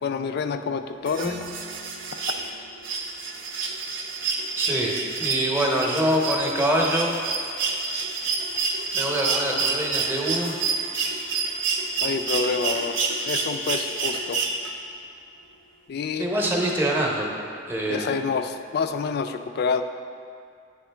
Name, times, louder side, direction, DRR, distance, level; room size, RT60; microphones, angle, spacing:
voice 1, 0.0-1.4 12.0-13.0 13.2-14.4 15.9-16.3 17.9-19.8, left 5 dB, 60° left, 8 dB, 0.3 m, -27 dB
sound 1, 1.1-15.0 16.4-16.5, right 4 dB, 90° right, 0.6 m, -28 dB
sound 2, 1.2-5.3, left 1 dB, 45° right, 0.6 m, -45 dB
voice 2, 4.6-7.1 8.9-10.7 16.1-17.4 17.7-18.2, right 1 dB, 10° right, -2 dB, 0.7 m, -25 dB
9.6 x 3.7 x 3.3 m, 2.3 s
head